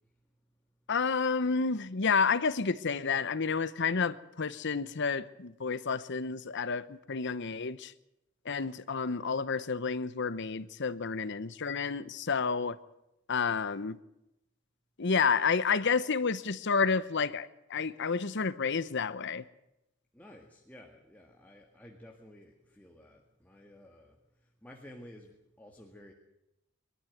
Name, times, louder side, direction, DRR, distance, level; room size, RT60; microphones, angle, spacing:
voice 1, 0.9-7.9 8.4-12.8 13.3-14.0 15.0-19.4, left 5 dB, 60° left, 0.9 m, -30 dB
voice 2, 20.1-26.1, left 1 dB, 10° left, 1.9 m, -53 dB
23.0 x 13.0 x 9.3 m
head